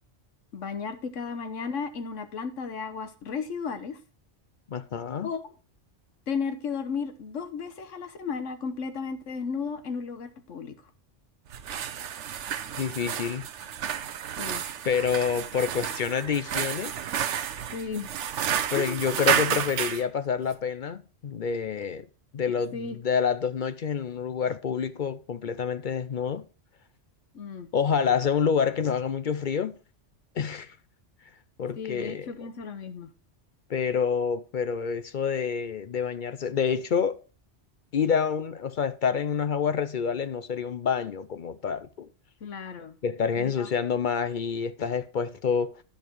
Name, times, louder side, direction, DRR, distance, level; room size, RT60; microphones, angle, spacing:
voice 1, 0.5-4.0 5.2-5.4 6.3-10.8 14.4-14.6 17.7-18.1 18.8-19.1 22.7-23.0 27.3-27.7 31.8-33.1 42.4-43.0 43.4-43.7, left 5 dB, 90° left, 1.4 m, -34 dB
voice 2, 4.7-5.3 11.7-11.8 12.8-13.4 14.8-16.9 18.7-22.0 22.3-26.4 27.7-29.7 30.4-30.8 31.6-32.3 33.7-37.2 37.9-42.1 43.0-45.8, left 6 dB, 55° left, 0.6 m, -27 dB
sound 1, 11.5-20.0, right 9 dB, 75° right, 1.0 m, -31 dB
10.5 x 6.9 x 4.5 m
omnidirectional pair, 1.2 m